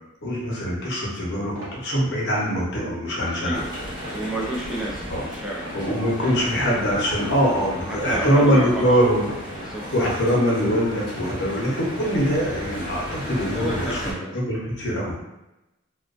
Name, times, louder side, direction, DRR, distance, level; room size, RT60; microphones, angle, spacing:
voice 1, 0.2-3.6 5.1-5.2 5.7-9.3 9.6-15.3, equal, 55° left, -4 dB, 0.8 m, -23 dB
sound 1, 1.5-1.8 2.4-2.6 3.2-3.4 4.0-4.3 4.8-5.2 5.6-5.8 6.4-6.6 7.2-7.4 8.0-8.2 8.8-9.0, right 1 dB, 60° right, 0.7 m, -41 dB
voice 2, 3.2-3.7 4.1-5.7 6.2-6.5 7.9-9.0 9.5-9.9 13.5-14.4, right 1 dB, ahead, -5 dB, 0.4 m, -32 dB
sound 2, 3.5-14.1, equal, 20° right, 0.8 m, -35 dB
2.4 x 2.2 x 2.4 m, 0.93 s
head